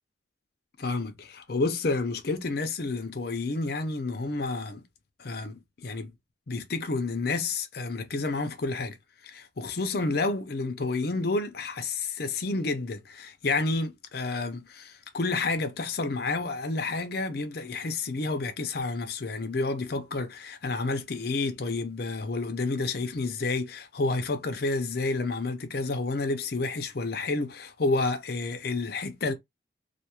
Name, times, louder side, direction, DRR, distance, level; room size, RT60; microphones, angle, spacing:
voice 1, 0.8-4.8 5.2-6.1 6.5-9.0 9.2-29.3, left 3 dB, 55° left, 0.6 m, -30 dB
2.4 x 2.3 x 2.9 m
head